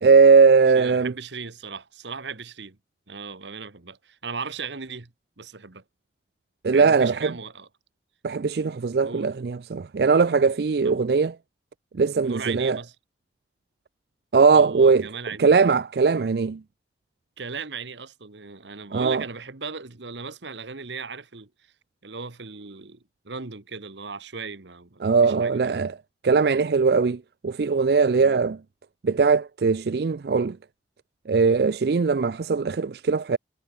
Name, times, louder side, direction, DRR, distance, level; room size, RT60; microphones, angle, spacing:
voice 1, 0.0-1.1 6.6-7.3 8.2-11.3 11.9-12.8 14.3-15.1 15.4-16.6 18.9-19.2 25.0-25.9 26.2-28.6 29.0-30.6 31.3-33.4, right 5 dB, 65° right, 0.4 m, -20 dB
voice 2, 0.7-2.8 3.1-5.1 5.4-5.8 6.7-7.7 9.0-9.3 10.8-11.0 12.2-12.9 14.5-15.5 17.4-21.5 22.0-25.8 28.2-28.4, right 5 dB, 90° right, 1.4 m, -37 dB
head